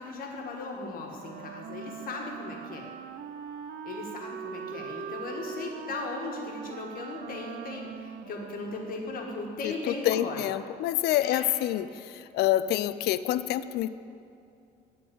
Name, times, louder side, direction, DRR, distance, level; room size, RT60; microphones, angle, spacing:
voice 1, 0.0-2.8 3.8-10.4 11.2-11.5, left 3 dB, 60° left, 1 dB, 1.5 m, -37 dB
Wind instrument woodwind instrument, 1.1-9.4, right 7 dB, 65° right, 0.5 m, -41 dB
voice 2, 9.6-13.9, left 13 dB, 75° left, 14 dB, 0.4 m, -27 dB
11.0 x 4.1 x 7.5 m, 2.5 s
cardioid pair, 110°, 17 cm